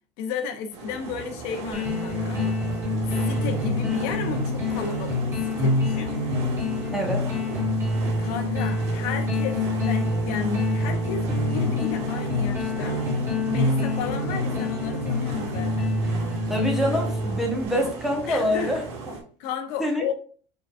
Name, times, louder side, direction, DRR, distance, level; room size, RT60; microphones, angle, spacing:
voice 1, 0.2-2.4 3.1-6.1 8.2-13.0 13.5-16.0 18.3-18.8 19.4-20.1, left 6 dB, 65° left, 0.8 m, -33 dB
sound 1, 0.7-19.2, right 3 dB, 80° right, 1.6 m, -37 dB
sound 2, 1.7-17.6, left 2 dB, 20° right, 2.0 m, -26 dB
voice 2, 6.9-7.3 16.5-18.8 19.8-20.0, equal, ahead, 1.2 m, -25 dB
5.0 x 3.9 x 2.5 m
supercardioid pair, 135°, 13 cm